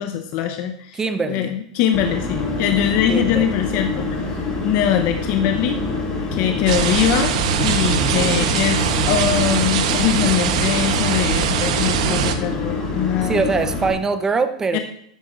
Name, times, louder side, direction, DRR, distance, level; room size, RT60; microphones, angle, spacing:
voice 1, 0.0-1.0 1.3-4.2 4.6-5.8 6.3-7.3 7.6-13.4 14.7-14.8, left 9 dB, 50° left, 6 dB, 0.8 m, -22 dB
voice 2, 0.9-1.5 3.1-3.5 7.9-8.6 13.2-14.8, right 4 dB, 15° right, 10 dB, 0.8 m, -23 dB
sound 1, 1.9-13.9, left 3 dB, 25° left, 4.0 m, -26 dB
Guitar, 2.2-8.2, left 3 dB, 70° left, 2.0 m, -37 dB
sound 2, 6.7-12.3, right 8 dB, 65° right, 1.0 m, -21 dB
12.5 x 9.7 x 2.5 m, 0.70 s
supercardioid pair, 130°, 4 cm